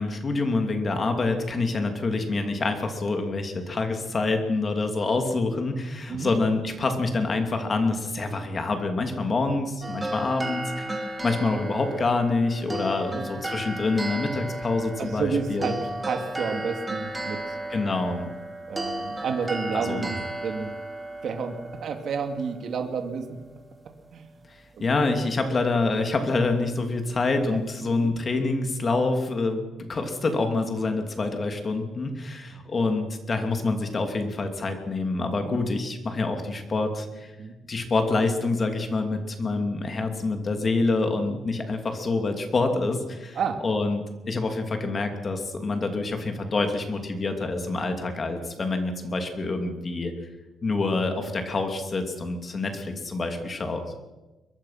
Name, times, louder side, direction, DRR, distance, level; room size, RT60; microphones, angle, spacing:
voice 1, 0.0-15.7 17.7-18.3 19.7-20.1 24.5-37.3 37.7-43.4 43.6-50.1 50.6-53.8, left 3 dB, 30° left, 5 dB, 2.7 m, -26 dB
sound 1, 9.8-23.0, right 1 dB, 15° right, 2.7 m, -34 dB
voice 2, 15.0-17.6 18.7-20.7 21.2-23.4 24.1-24.3 24.7-25.1 27.5-27.6 28.0-28.1 35.4-35.6 37.4-37.5 39.5-39.6 41.3-41.4 43.3-43.6 47.8-47.9 51.3-51.4, right 5 dB, 50° right, 5 dB, 2.5 m, -31 dB
22.5 x 22.0 x 5.9 m, 1.1 s
cardioid pair, 165°, 0 cm